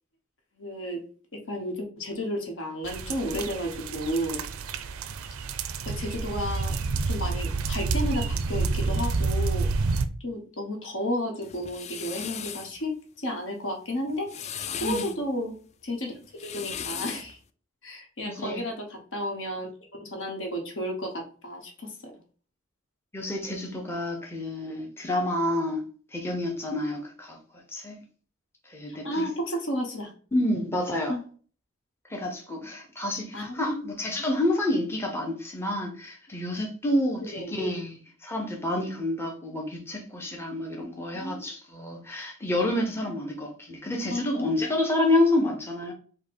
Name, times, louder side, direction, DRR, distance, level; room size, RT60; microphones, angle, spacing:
voice 1, 0.6-1.0 1.5-4.4 5.8-6.8 7.1-9.7 10.2-14.5 14.8-15.5 15.8-16.1 16.5-17.4 17.8-19.7 20.0-22.1 28.9-30.1 31.1-31.2 33.3-33.9 37.2-37.5 41.1-41.4 44.1-44.5, equal, 65° left, 1.3 m, -32 dB
sound 1, 2.8-10.1, right 4 dB, 70° right, 0.4 m, -29 dB
sound 2, 11.4-12.7 14.1-15.2 16.2-17.3, left 8 dB, 30° left, 0.3 m, -36 dB
voice 2, 18.2-18.6 23.1-25.8 26.1-27.4 27.7-28.0 28.7-29.2 30.3-31.1 32.1-45.9, left 1 dB, 10° left, 0.7 m, -28 dB
5.2 x 2.1 x 4.3 m
head